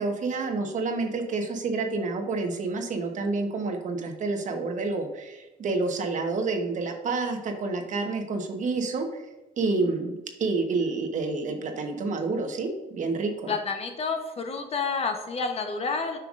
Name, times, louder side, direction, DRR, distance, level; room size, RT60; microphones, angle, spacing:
voice 1, 0.0-9.2 9.6-13.5, right 3 dB, 45° right, 4 dB, 1.0 m, -29 dB
voice 2, 13.5-16.2, left 4 dB, 35° left, 5 dB, 0.9 m, -29 dB
7.2 x 5.7 x 2.5 m, 1.1 s
cardioid pair, 110°, 17 cm